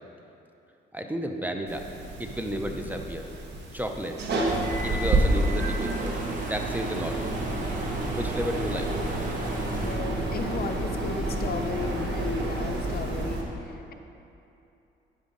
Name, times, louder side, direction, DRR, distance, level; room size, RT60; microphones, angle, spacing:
voice 1, 0.9-1.9 2.2-3.3 3.7-4.2 4.8-6.1 6.4-7.2 8.2-8.9, equal, 10° right, 3 dB, 0.7 m, -32 dB
sound 1, 1.7-13.4, right 2 dB, 60° right, 1.3 m, -30 dB
sound 2, 4.4-9.9, right 1 dB, 40° right, 1.4 m, -39 dB
sound 3, 7.1-13.3, right 1 dB, 25° right, 1.1 m, -34 dB
voice 2, 9.8-13.9, left 5 dB, 50° left, 6 dB, 0.6 m, -35 dB
9.4 x 7.0 x 3.9 m, 2.8 s
cardioid pair, 90°, 20 cm